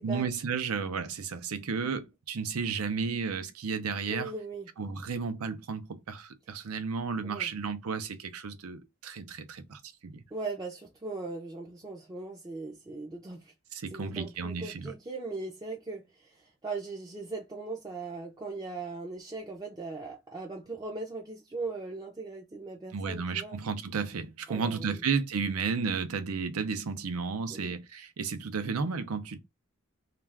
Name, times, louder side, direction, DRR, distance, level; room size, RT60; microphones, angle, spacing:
voice 1, 0.0-4.3 4.8-10.2 13.7-14.9 22.9-29.4, right 5 dB, 90° right, 0.6 m, -33 dB
voice 2, 4.1-4.7 7.2-7.5 10.3-13.5 13.9-23.6 24.5-25.0 27.5-27.8, right 3 dB, 20° right, 0.4 m, -39 dB
2.4 x 2.3 x 3.3 m
head